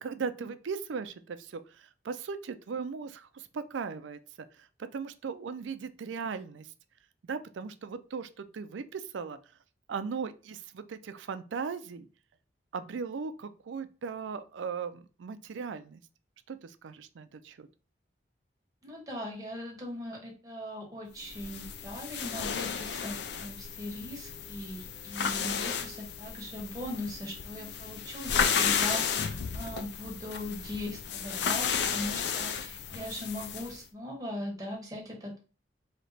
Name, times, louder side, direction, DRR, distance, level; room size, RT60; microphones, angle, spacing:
voice 1, 0.0-4.2 4.5-6.7 7.3-9.4 9.9-12.1 12.7-16.0 16.5-17.7, right 5 dB, 90° right, 11 dB, 0.4 m, -38 dB
voice 2, 18.8-35.4, left 1 dB, 20° right, -2 dB, 1.2 m, -40 dB
sound 1, 21.2-33.8, left 7 dB, 65° left, 0.4 m, -33 dB
3.2 x 2.9 x 4.1 m, 0.36 s
head